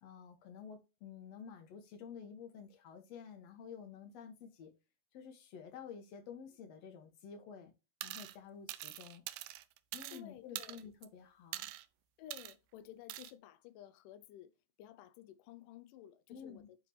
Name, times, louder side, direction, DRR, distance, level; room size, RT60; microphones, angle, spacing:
voice 1, 0.0-4.7 5.1-7.7 8.0-9.2 9.9-11.7 16.3-16.7, left 7 dB, 55° left, 2.3 m, -51 dB
sound 1, 8.0-8.4 8.7-10.2 10.6-11.1 11.5-11.8 12.3-12.5 13.1-13.3, right 15 dB, 80° right, 2.0 m, -44 dB
voice 2, 10.1-10.8 12.2-14.5 14.8-16.8, left 12 dB, 90° left, 1.8 m, -54 dB
9.3 x 5.1 x 3.0 m
omnidirectional pair, 4.5 m